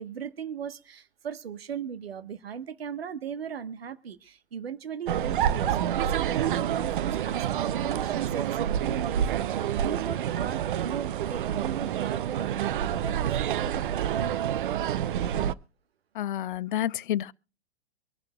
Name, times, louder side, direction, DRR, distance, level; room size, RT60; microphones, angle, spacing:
voice 1, 0.0-5.8 6.0-14.8, right 8 dB, 65° right, 1.2 m, -38 dB
sound 1, 5.1-15.5, right 10 dB, 50° right, 0.6 m, -28 dB
voice 2, 16.2-17.3, left 12 dB, 50° left, 0.5 m, -29 dB
24.5 x 11.0 x 2.2 m
figure-of-eight pair, 110°, 32 cm